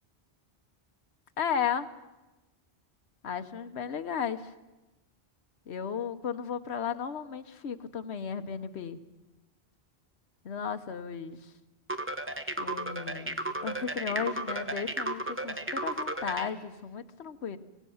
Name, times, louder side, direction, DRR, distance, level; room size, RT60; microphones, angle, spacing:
voice 1, 1.4-1.9 3.2-4.5 5.7-9.0 10.4-11.5 12.6-17.6, left 7 dB, 80° left, 9 dB, 1.3 m, -34 dB
sound 1, 11.9-16.5, right 2 dB, 10° right, 0.9 m, -34 dB
25.0 x 17.0 x 7.1 m, 1.1 s
omnidirectional pair, 1.1 m